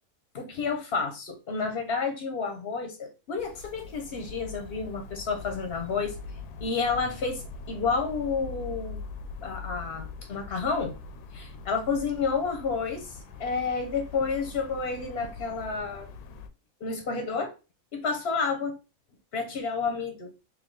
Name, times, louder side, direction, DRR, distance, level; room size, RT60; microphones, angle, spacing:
voice 1, 0.3-6.2 6.6-7.4 7.7-9.0 9.4-10.9 11.3-13.1 13.4-16.1 16.8-17.5 17.9-18.7 19.3-20.3, left 4 dB, 50° left, 5 dB, 0.8 m, -30 dB
sound 1, 3.4-16.5, left 4 dB, 85° left, 1.1 m, -42 dB
3.5 x 2.8 x 3.8 m, 0.30 s
omnidirectional pair, 1.6 m